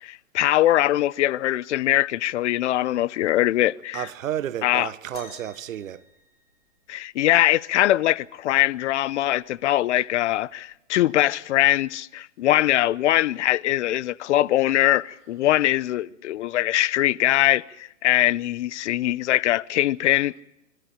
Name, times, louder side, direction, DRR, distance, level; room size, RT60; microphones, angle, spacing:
voice 1, 0.0-4.1 4.6-4.9 6.9-20.3, left 14 dB, 60° left, 0.7 m, -22 dB
voice 2, 3.9-6.0, right 11 dB, 75° right, 1.2 m, -31 dB
sound 1, 5.1-7.0 8.7-8.8 9.6-9.8 10.7-10.8, left 5 dB, 80° left, 5.9 m, -47 dB
26.0 x 13.5 x 10.0 m
hypercardioid pair, 130°, 40 cm